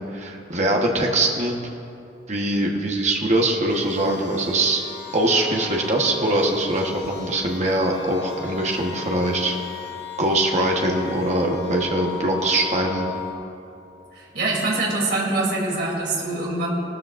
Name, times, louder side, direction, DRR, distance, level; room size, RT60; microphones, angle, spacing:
voice 1, 0.0-1.6 2.3-4.8 5.1-9.6 10.2-13.1, right 1 dB, 40° right, 0 dB, 1.3 m, -22 dB
sound 1, 3.7-13.3, left 8 dB, 75° left, 3.3 m, -37 dB
voice 2, 14.1-16.7, right 2 dB, 60° right, -4 dB, 3.2 m, -24 dB
18.5 x 13.5 x 2.6 m, 2.8 s
head